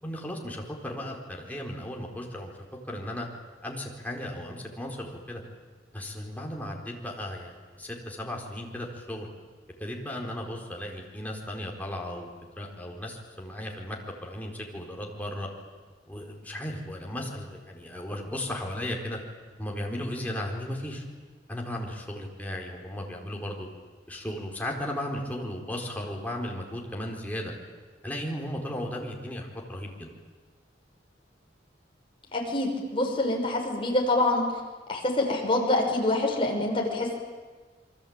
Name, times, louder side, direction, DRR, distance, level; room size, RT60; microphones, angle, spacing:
voice 1, 0.0-2.5 2.9-3.3 3.6-5.4 5.9-9.3 9.8-12.3 12.6-15.5 16.1-19.2 19.6-21.0 21.5-23.7 24.1-27.5 28.0-30.1, left 1 dB, 10° left, -1 dB, 4.5 m, -35 dB
voice 2, 32.3-34.4 34.9-37.1, left 2 dB, 30° left, 0 dB, 6.1 m, -26 dB
28.0 x 23.5 x 9.0 m, 1.4 s
head